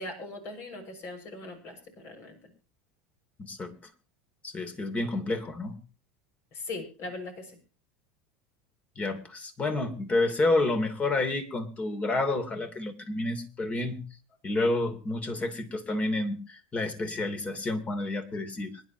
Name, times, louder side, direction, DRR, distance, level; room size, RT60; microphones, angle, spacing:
voice 1, 0.0-2.4 6.5-7.6, left 2 dB, 55° left, 5 dB, 6.4 m, -40 dB
voice 2, 3.4-3.7 4.4-5.8 9.0-14.0 14.4-18.8, left 2 dB, 30° left, 8 dB, 3.0 m, -29 dB
25.5 x 11.0 x 3.0 m, 0.34 s
hypercardioid pair, 95°, 5 cm